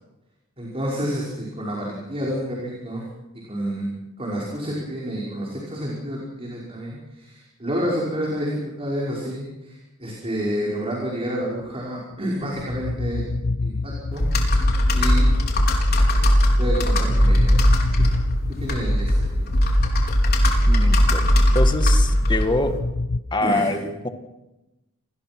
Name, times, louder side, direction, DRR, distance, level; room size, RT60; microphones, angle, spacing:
voice 1, 0.6-3.1 3.5-3.9 4.2-13.2 13.6-14.3 14.9-15.3 16.6-17.6 18.6-19.6 23.4-23.8, equal, 30° right, -3 dB, 5.4 m, -29 dB
sound 1, 12.1-23.2, left 3 dB, 70° left, 1.0 m, -30 dB
Computer keyboard, 14.2-22.8, equal, 50° left, 4.5 m, -18 dB
voice 2, 20.7-21.3 21.5-22.8 23.3-24.1, left 2 dB, 20° left, 6 dB, 1.9 m, -25 dB
29.0 x 20.5 x 6.2 m, 0.99 s
head